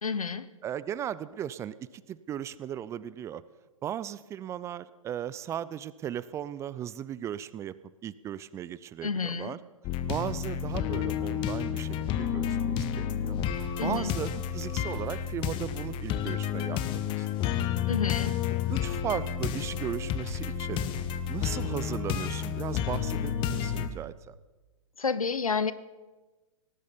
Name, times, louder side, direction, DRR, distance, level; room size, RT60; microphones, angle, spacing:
voice 1, 0.0-0.5 9.0-9.5 13.8-14.1 17.9-18.4 25.0-25.7, left 5 dB, 90° left, 16 dB, 0.9 m, -30 dB
voice 2, 0.6-3.4 3.8-7.7 8.0-9.6 10.1-13.4 13.8-17.5 18.5-20.8 21.3-24.4, right 10 dB, 15° right, 18 dB, 0.4 m, -37 dB
sound 1, 9.8-23.9, left 9 dB, 30° left, 1.1 m, -31 dB
18.5 x 10.5 x 7.1 m, 1.2 s
figure-of-eight pair, 120°, 18 cm